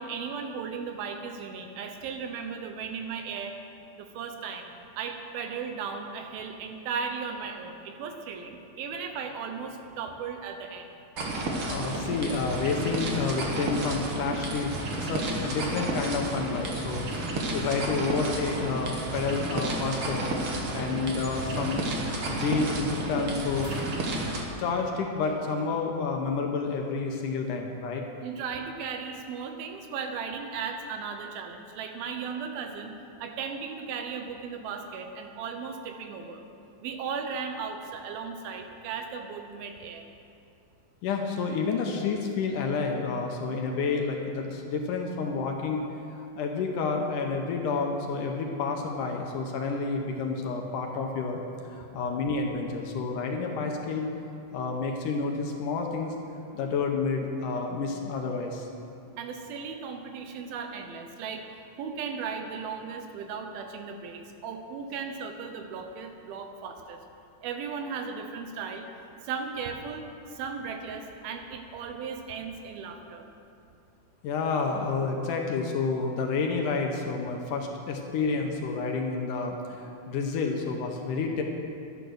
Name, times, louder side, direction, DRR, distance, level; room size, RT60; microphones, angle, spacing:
voice 1, 0.0-3.5 3.9-11.0 28.2-32.9 33.2-36.4 36.8-40.0 59.2-61.4 61.8-67.0 67.4-68.9 69.2-73.3, right 5 dB, 80° right, 5 dB, 2.8 m, -36 dB
sound 1, 11.2-24.4, right 2 dB, 55° right, 1.5 m, -31 dB
voice 2, 11.7-23.7 24.6-28.0 41.0-51.4 51.7-54.1 54.5-56.2 56.5-58.7 74.2-81.4, left 4 dB, 70° left, 2 dB, 2.2 m, -30 dB
sound 2, 23.6-26.9 27.9-28.0, right 1 dB, 30° right, 2.4 m, -49 dB
11.5 x 10.5 x 6.4 m, 2.6 s
omnidirectional pair, 4.3 m